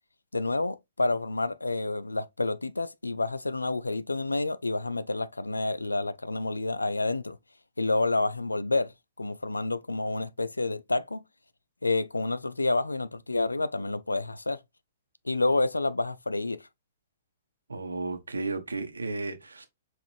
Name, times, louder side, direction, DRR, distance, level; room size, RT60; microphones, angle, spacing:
voice 1, 0.3-7.4 7.8-8.9 9.2-11.2 11.8-14.6 15.2-16.7, left 2 dB, 80° left, 0.4 m, -29 dB
voice 2, 17.7-19.7, right 3 dB, 75° right, 0.9 m, -33 dB
5.7 x 2.5 x 3.1 m
figure-of-eight pair, 110°, 0 cm